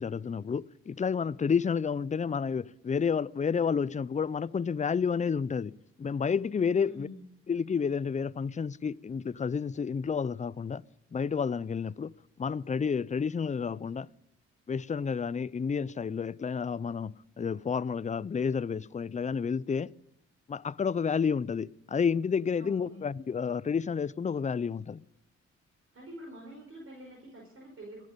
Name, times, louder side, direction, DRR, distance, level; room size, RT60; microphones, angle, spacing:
voice 1, 0.0-7.1 7.5-10.8 11.1-14.1 14.7-19.9 20.5-25.0, left 6 dB, 25° left, 0.5 m, -30 dB
voice 2, 6.8-7.2 22.6-23.1 25.9-28.0, equal, 40° right, 5.4 m, -47 dB
23.0 x 7.7 x 5.2 m
supercardioid pair, 45°, 32 cm